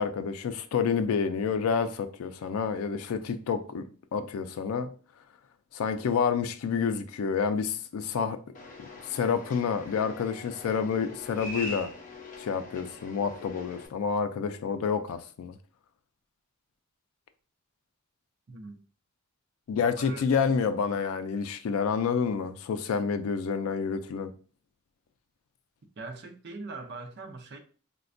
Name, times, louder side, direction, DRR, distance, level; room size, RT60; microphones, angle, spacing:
voice 1, 0.0-3.8 4.1-4.9 5.7-8.4 9.0-11.9 12.4-15.6 19.7-24.3, left 6 dB, 85° left, 0.3 m, -28 dB
sound 1, 8.5-13.9, left 2 dB, 40° left, 0.6 m, -43 dB
voice 2, 18.5-18.8 20.0-20.9 26.0-27.6, right 3 dB, 55° right, 0.5 m, -42 dB
4.1 x 2.2 x 2.5 m
head